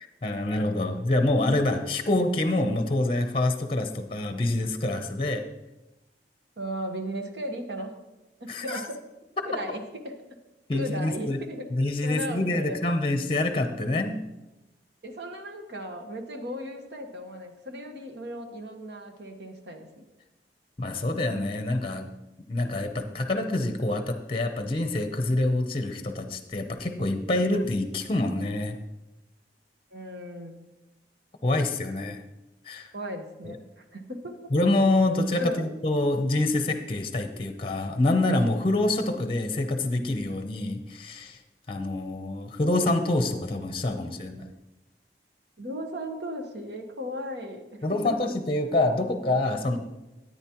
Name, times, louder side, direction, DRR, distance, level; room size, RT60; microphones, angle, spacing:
voice 1, 0.2-5.4 8.5-8.8 10.7-11.4 11.7-14.2 20.8-22.1 22.5-28.8 31.4-32.2 32.6-32.9 33.4-33.6 34.5-41.4 41.7-44.5 47.8-49.8, left 2 dB, 30° left, 7 dB, 0.7 m, -26 dB
voice 2, 6.6-8.0 8.4-8.8 9.4-10.1 10.7-11.6 12.0-13.0 15.0-20.0 29.9-30.7 32.9-34.4 35.4-35.7 45.6-47.8 48.2-48.3, equal, 70° right, 4 dB, 1.3 m, -36 dB
14.0 x 9.0 x 3.0 m, 1.0 s
head